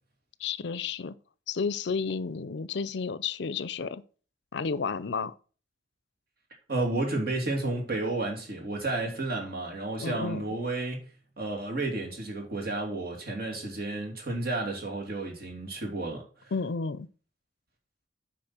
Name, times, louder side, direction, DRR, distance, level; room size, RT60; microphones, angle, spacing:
voice 1, 0.4-1.2 1.5-4.0 4.5-5.3 10.0-10.4 16.5-17.1, left 5 dB, 65° left, 0.5 m, -31 dB
voice 2, 6.7-11.0 11.4-16.2, right 2 dB, 55° right, 2.9 m, -31 dB
8.7 x 5.3 x 4.4 m
head